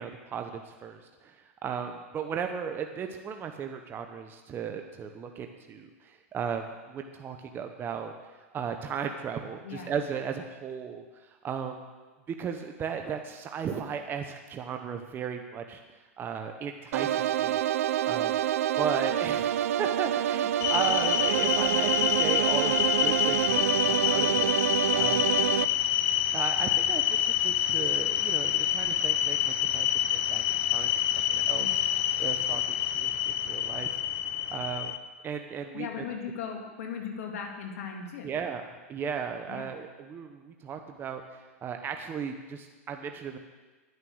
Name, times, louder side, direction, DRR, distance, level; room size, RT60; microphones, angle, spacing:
voice 1, 0.0-8.1 8.5-11.8 12.3-17.6 18.0-18.4 18.8-22.8 23.0-24.5 24.9-25.3 26.3-30.4 30.7-30.9 31.3-31.8 32.2-33.1 33.4-34.0 34.5-34.9 35.2-36.0 38.2-43.4, right 7 dB, 25° right, 5 dB, 0.9 m, -36 dB
voice 2, 9.6-9.9 31.6-31.9 35.7-38.3 39.5-39.7, left 6 dB, 75° left, 2 dB, 2.0 m, -38 dB
sound 1, 16.9-25.6, right 11 dB, 75° right, 0.4 m, -27 dB
sound 2, 20.6-35.0, left 11 dB, 50° left, 0.7 m, -27 dB
11.0 x 9.6 x 6.3 m, 1.3 s
hypercardioid pair, 115°, 8 cm